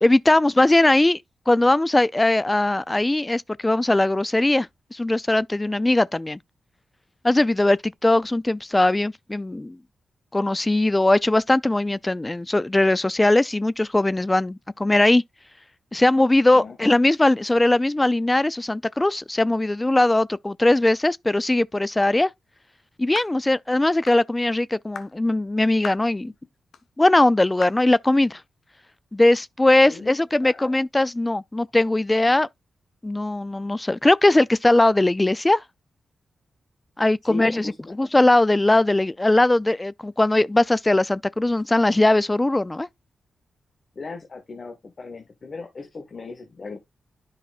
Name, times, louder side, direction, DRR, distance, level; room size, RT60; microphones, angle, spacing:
voice 1, 0.0-1.2 1.5-6.4 7.2-9.8 10.3-15.2 15.9-22.3 23.0-26.3 27.0-28.4 29.1-32.5 33.0-35.6 37.0-37.7 38.0-42.9, left 2 dB, 20° left, 0.4 m, -20 dB
sound 1, 23.1-23.4 24.1-24.2 24.9-25.1 25.8-26.1 26.7-26.8 27.6-27.8, left 7 dB, 80° left, 0.8 m, -37 dB
voice 2, 37.2-37.9 43.9-46.8, left 3 dB, 50° left, 1.5 m, -38 dB
10.0 x 5.6 x 2.5 m
supercardioid pair, 45°, 0 cm